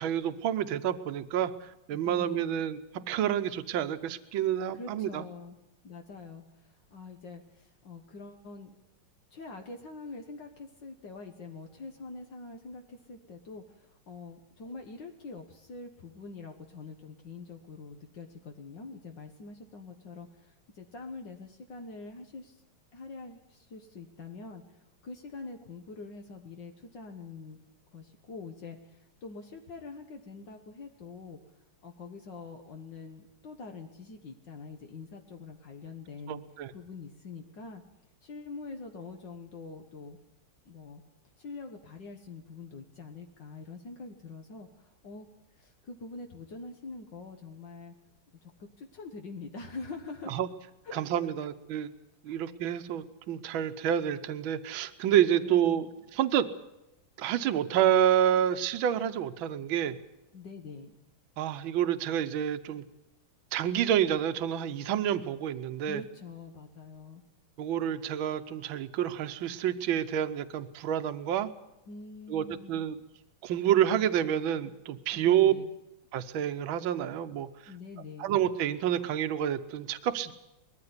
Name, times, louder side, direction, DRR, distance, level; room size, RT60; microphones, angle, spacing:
voice 1, 0.0-2.8 3.1-5.2 36.3-36.7 50.3-50.5 50.9-51.9 52.2-55.9 56.1-56.5 57.2-60.0 61.4-62.8 63.5-66.0 67.6-71.5 72.3-73.0 73.4-75.5 76.1-77.7 78.2-80.3, right 10 dB, 75° right, 10 dB, 1.7 m, -28 dB
voice 2, 1.9-2.6 4.7-5.6 5.8-8.7 9.3-22.6 22.9-27.6 27.9-31.4 31.8-36.4 36.7-37.8 38.2-40.2 40.7-41.0 41.4-45.3 45.5-47.9 48.4-50.4 50.9-51.5 52.3-52.4 55.3-55.9 60.3-60.9 65.8-67.2 71.9-72.9 75.1-75.7 77.7-78.3, left 4 dB, 60° left, 4 dB, 2.0 m, -45 dB
20.5 x 14.5 x 9.6 m, 0.91 s
omnidirectional pair, 2.2 m